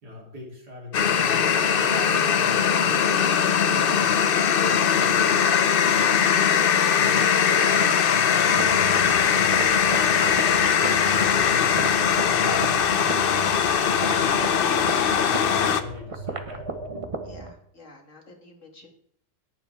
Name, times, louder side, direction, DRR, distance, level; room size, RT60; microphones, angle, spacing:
voice 1, 0.0-3.0 3.5-4.1 4.6-6.3 6.9-10.3 11.0-17.0, left 2 dB, 70° right, -2 dB, 3.7 m, -42 dB
sound 1, 0.9-15.8, left 7 dB, 70° left, 0.5 m, -21 dB
sound 2, 8.5-17.5, right 3 dB, 30° right, 0.7 m, -35 dB
voice 2, 17.2-18.9, left 2 dB, 50° left, 2 dB, 2.0 m, -46 dB
18.5 x 7.3 x 3.5 m, 0.66 s
omnidirectional pair, 1.8 m